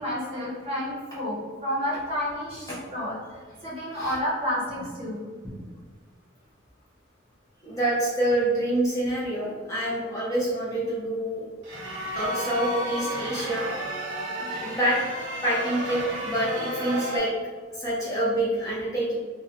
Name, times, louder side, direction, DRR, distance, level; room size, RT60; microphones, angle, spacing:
voice 1, 0.0-3.2 3.6-5.6, equal, 30° right, -6 dB, 0.7 m, -30 dB
voice 2, 7.6-11.4 11.8-13.7 14.4-15.0 15.4-17.3 17.7-19.2, right 1 dB, 15° left, -7 dB, 0.5 m, -27 dB
sound 1, 11.6-17.2, right 1 dB, 85° right, 0.6 m, -32 dB
2.6 x 2.1 x 2.6 m, 1.5 s
head